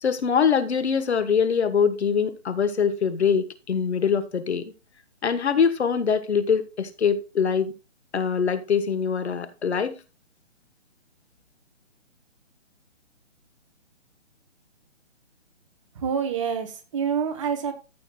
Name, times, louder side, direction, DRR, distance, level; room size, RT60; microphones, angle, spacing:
voice 1, 0.0-4.7 5.2-7.7 8.1-10.0, left 6 dB, 60° left, 1.4 m, -23 dB
voice 2, 15.9-17.7, right 7 dB, 25° right, 1.1 m, -27 dB
14.0 x 7.0 x 2.3 m
hypercardioid pair, 155°, 37 cm